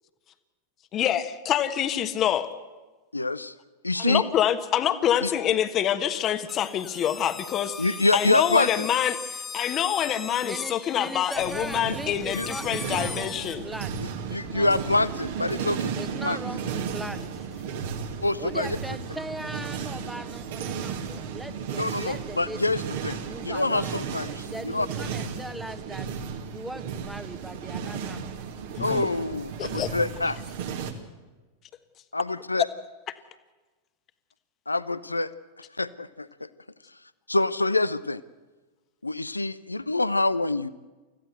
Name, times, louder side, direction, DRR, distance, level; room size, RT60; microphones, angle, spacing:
voice 1, 0.9-2.5 4.0-7.9 8.1-13.7 28.8-29.1 29.6-29.9, left 10 dB, 30° left, 11 dB, 1.3 m, -26 dB
voice 2, 3.1-3.5 3.8-4.2 5.2-5.3 7.8-8.9 11.8-12.0 12.3-12.5 14.0-16.0 16.2-16.4 18.2-18.8 21.7-24.9 28.8-30.4 32.1-32.7 34.7-35.3 35.6-36.5 37.3-38.2 39.0-40.7, left 2 dB, 80° left, 16 dB, 0.7 m, -26 dB
sound 1, 6.5-13.6, left 4 dB, 15° left, 1.8 m, -39 dB
voice 3, 10.4-14.0 14.3-14.9 16.0-17.3 18.4-22.8 23.2-24.0 24.3-26.1 26.5-28.3, right 1 dB, 5° right, 12 dB, 1.3 m, -39 dB
sound 2, 11.4-30.9, right 6 dB, 55° right, 2.2 m, -34 dB
25.5 x 15.5 x 8.0 m, 1.2 s
figure-of-eight pair, 90°, 0 cm